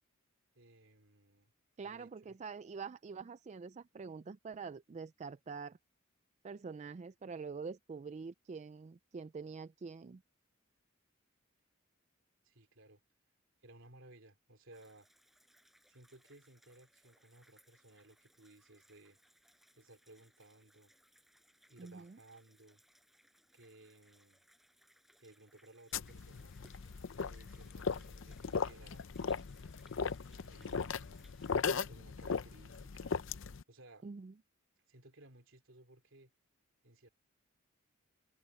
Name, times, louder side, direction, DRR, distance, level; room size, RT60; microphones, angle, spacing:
voice 1, 0.5-1.5 1.8-2.4 12.4-13.0 13.6-15.1 15.9-19.2 19.7-20.9 21.7-22.8 23.5-24.4 25.2-26.5 27.2-29.0 30.4-31.4 31.9-33.2 33.7-34.1 34.9-36.3 36.8-37.1, right 2 dB, 65° right, 3.2 m, -60 dB
voice 2, 1.8-5.8 6.4-10.2 21.8-22.2 34.0-34.3, right 5 dB, 35° right, 0.3 m, -45 dB
sound 1, 14.7-31.6, equal, ahead, 7.1 m, -69 dB
sound 2, 25.9-33.6, left 5 dB, 65° left, 0.6 m, -38 dB
head